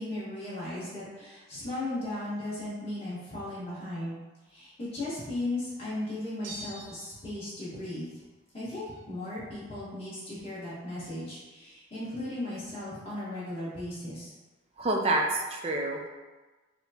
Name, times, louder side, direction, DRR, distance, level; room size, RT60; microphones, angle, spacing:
voice 1, 0.0-4.2 4.5-8.2 8.5-14.3, left 1 dB, 30° left, -11 dB, 1.4 m, -36 dB
sound 1, 6.4-7.4, right 1 dB, 85° right, 0.7 m, -44 dB
voice 2, 14.8-16.1, right 2 dB, 30° right, 0 dB, 0.4 m, -28 dB
5.9 x 2.2 x 2.8 m, 1.2 s
head